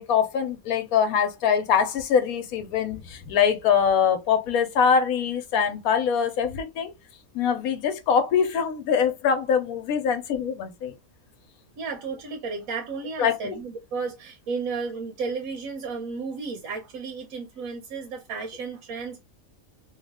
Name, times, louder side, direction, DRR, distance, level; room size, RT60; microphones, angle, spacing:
voice 1, 0.0-6.9 7.3-10.9 13.2-13.6, left 7 dB, 90° left, 1.2 m, -23 dB
voice 2, 11.8-19.2, right 4 dB, 85° right, 1.2 m, -33 dB
3.1 x 2.3 x 3.5 m
omnidirectional pair, 1.5 m